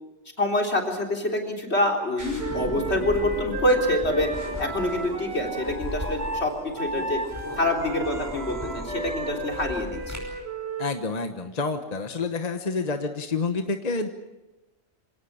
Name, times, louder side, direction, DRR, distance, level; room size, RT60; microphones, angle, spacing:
voice 1, 0.4-4.3 4.6-7.2 7.6-10.3, left 1 dB, 70° left, 1 dB, 4.0 m, -26 dB
sound 1, 2.2-10.2, equal, 15° right, 5.6 m, -36 dB
Wind instrument woodwind instrument, 2.4-10.9, right 2 dB, 65° right, 3.0 m, -34 dB
voice 2, 10.8-14.1, left 4 dB, 35° left, 7 dB, 1.2 m, -28 dB
26.0 x 18.0 x 8.7 m, 1.1 s
omnidirectional pair, 1.2 m